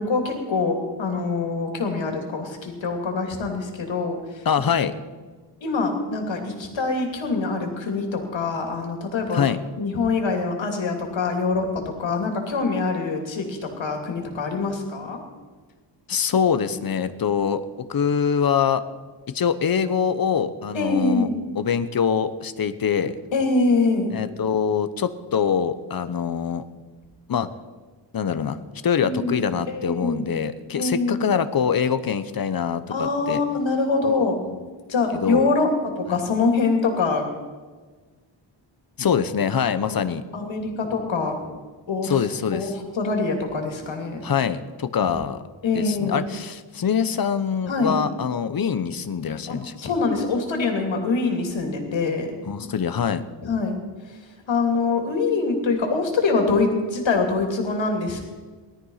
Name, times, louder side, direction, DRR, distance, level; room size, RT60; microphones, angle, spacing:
voice 1, 0.0-4.5 5.6-9.4 9.8-15.2 20.7-21.4 23.3-24.1 29.0-30.3 30.8-31.2 32.9-34.3 34.9-35.7 36.0-37.3 39.9-40.0 40.3-41.4 41.9-42.3 42.5-44.2 45.0-45.1 45.6-46.2 47.7-48.0 49.5-52.3 53.4-58.2, left 3 dB, 85° left, 3 dB, 3.1 m, -24 dB
voice 2, 4.4-4.9 9.3-9.6 16.1-17.6 17.9-18.8 19.3-21.3 21.6-23.2 24.1-26.6 27.3-27.5 28.1-33.4 35.2-35.5 39.0-40.2 42.0-42.7 44.2-45.4 45.7-49.7 52.5-53.2, left 7 dB, 50° left, 12 dB, 1.0 m, -24 dB
18.5 x 13.0 x 5.7 m, 1.4 s
wide cardioid pair, 120°, 44 cm